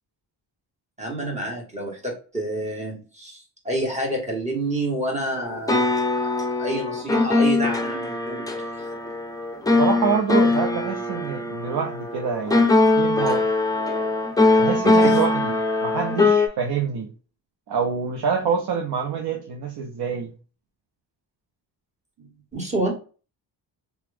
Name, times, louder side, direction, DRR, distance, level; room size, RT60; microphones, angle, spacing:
voice 1, 1.0-8.5 14.9-15.2 22.5-22.9, right 1 dB, 15° right, 1.8 m, -28 dB
sound 1, 5.5-16.5, left 2 dB, 10° left, 0.7 m, -21 dB
voice 2, 9.8-12.7 13.0-13.5 14.6-15.5 15.8-17.1 17.7-20.3, right 6 dB, 60° right, 0.8 m, -26 dB
3.0 x 2.3 x 3.5 m
cardioid pair, 80°, 44 cm